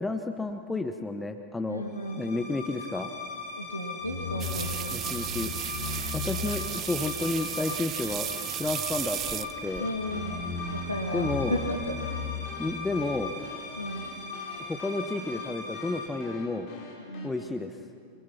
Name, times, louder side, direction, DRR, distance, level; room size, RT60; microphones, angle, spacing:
voice 1, 0.0-1.8 2.2-3.1 4.9-5.5 6.1-8.3 8.6-9.9 11.1-11.6 12.6-13.3 14.6-16.7 17.2-17.8, left 2 dB, 10° left, 7 dB, 0.9 m, -31 dB
voice 2, 1.7-2.3 3.6-5.0 9.8-10.4 10.7-12.0 13.8-14.1 17.0-17.3, equal, 80° left, 3 dB, 2.5 m, -34 dB
sound 1, 1.9-16.1, left 4 dB, 60° left, 7.8 m, -37 dB
sound 2, 4.4-9.9, right 12 dB, 30° right, 0.6 m, -35 dB
Pop Music, 9.1-17.3, left 3 dB, 40° left, 5.6 m, -47 dB
26.5 x 23.5 x 5.8 m, 2.3 s
figure-of-eight pair, 90°, 0 cm